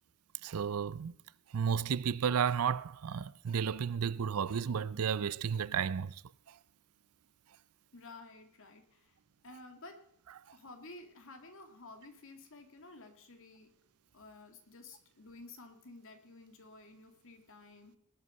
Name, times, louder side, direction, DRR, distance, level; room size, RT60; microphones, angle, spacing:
voice 1, 0.4-1.1 1.5-6.2, right 7 dB, 80° right, 0.5 m, -32 dB
voice 2, 7.9-9.2 9.4-10.0 10.5-13.7 14.1-18.0, left 2 dB, 65° left, 2.2 m, -53 dB
19.0 x 8.1 x 5.5 m
head